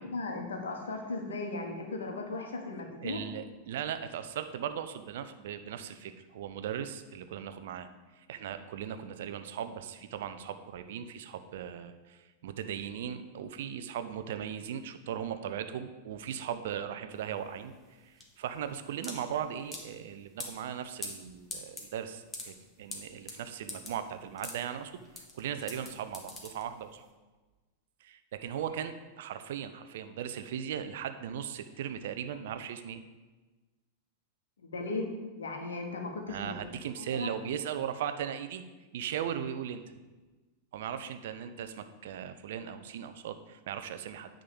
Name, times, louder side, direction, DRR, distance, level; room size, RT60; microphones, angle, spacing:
voice 1, 0.1-3.2 34.6-35.1 35.4-36.6 36.9-37.3, left 3 dB, 65° left, 3 dB, 1.5 m, -37 dB
voice 2, 3.0-7.9 8.2-17.7 18.0-27.1 28.0-33.0 36.3-38.6 38.9-39.8 40.7-44.3, right 9 dB, 55° right, 9 dB, 0.6 m, -38 dB
sound 1, 17.1-27.0, left 2 dB, 15° left, 1.6 m, -44 dB
9.6 x 3.9 x 7.0 m, 1.2 s
figure-of-eight pair, 90°, 0 cm